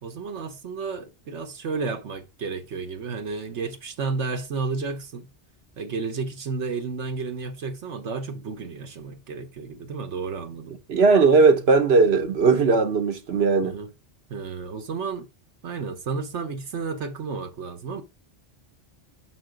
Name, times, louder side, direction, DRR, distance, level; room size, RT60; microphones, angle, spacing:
voice 1, 0.0-5.3 5.8-10.8 13.6-13.9 14.3-15.3 15.6-18.0, right 4 dB, 85° right, 1.4 m, -32 dB
voice 2, 10.9-13.8, right 4 dB, 65° right, 1.1 m, -18 dB
6.2 x 5.1 x 5.0 m
omnidirectional pair, 1.2 m